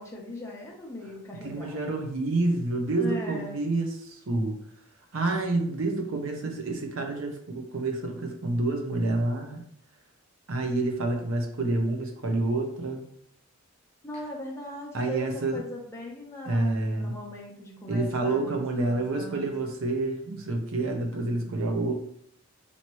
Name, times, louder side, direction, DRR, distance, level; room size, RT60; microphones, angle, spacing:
voice 1, 0.0-2.0 3.0-3.6 14.0-19.6 21.2-21.7, left 1 dB, 10° left, -3 dB, 0.8 m, -39 dB
voice 2, 1.4-4.6 5.1-9.6 10.5-13.1 14.9-15.6 16.5-17.2 17.9-21.9, right 2 dB, 65° right, 4 dB, 0.8 m, -28 dB
4.4 x 2.9 x 3.0 m, 0.69 s
head